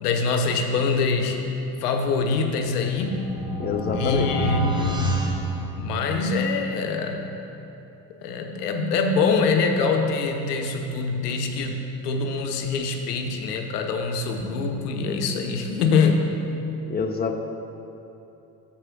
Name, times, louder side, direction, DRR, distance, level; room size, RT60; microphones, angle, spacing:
voice 1, 0.0-1.4 1.8-3.2 3.9-5.1 5.8-7.4 8.2-16.3, left 4 dB, 90° left, 4 dB, 0.7 m, -24 dB
sound 1, 2.6-6.4, right 1 dB, 10° right, 0.8 m, -28 dB
voice 2, 3.6-4.5 16.9-17.4, left 5 dB, 20° left, 5 dB, 0.6 m, -26 dB
7.0 x 4.8 x 6.0 m, 2.9 s
hypercardioid pair, 65°, 46 cm